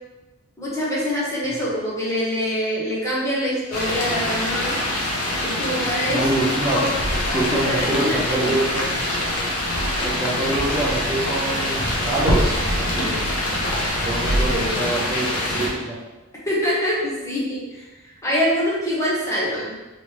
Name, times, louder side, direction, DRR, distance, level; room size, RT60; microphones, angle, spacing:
voice 1, 0.6-4.7 5.4-6.3 6.7-6.9 7.3-8.5 16.5-17.9 18.2-19.8, equal, 15° left, -6 dB, 0.8 m, -24 dB
sound 1, 3.7-15.7, left 1 dB, 90° left, 0.8 m, -24 dB
voice 2, 6.0-6.8 7.3-9.0 10.0-13.3 14.0-16.0, right 2 dB, 20° right, -7 dB, 0.4 m, -25 dB
3.2 x 3.2 x 2.8 m, 1.1 s
head